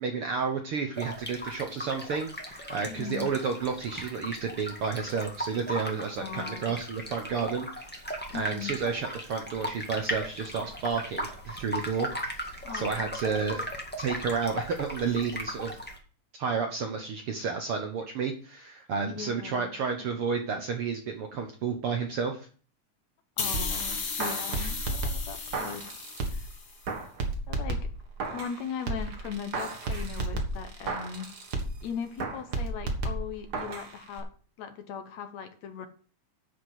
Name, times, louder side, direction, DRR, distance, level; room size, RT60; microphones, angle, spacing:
voice 1, 0.0-8.0 8.3-12.1 12.4-13.6 14.0-15.7 16.3-22.5, right 5 dB, 60° right, 4 dB, 1.5 m, -31 dB
sound 1, 0.9-16.0, equal, 5° left, 0.9 m, -38 dB
voice 2, 2.8-3.3 6.2-6.8 8.3-8.7 12.6-13.1 19.1-20.2 23.4-26.5 27.5-27.8 28.3-31.3 31.8-34.3 34.6-35.9, left 7 dB, 65° left, 8 dB, 2.1 m, -39 dB
sound 2, 23.4-26.8, left 5 dB, 50° left, 2.6 m, -35 dB
sound 3, 23.5-26.5 26.9-28.6 28.9-31.9 32.2-33.9 34.2-34.3, right 2 dB, 45° right, 1.5 m, -33 dB
10.5 x 5.2 x 7.9 m, 0.41 s
omnidirectional pair, 3.7 m